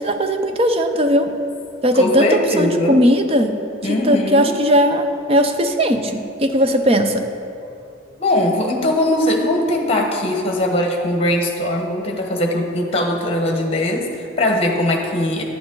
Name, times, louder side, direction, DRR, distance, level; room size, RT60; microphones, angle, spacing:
voice 1, 0.0-1.3 1.8-3.6 3.8-7.3, equal, 30° right, 6 dB, 0.6 m, -18 dB
voice 2, 1.9-3.0 3.8-4.6 8.1-15.4, left 1 dB, 30° left, 2 dB, 1.2 m, -20 dB
10.5 x 9.2 x 3.9 m, 2.6 s
head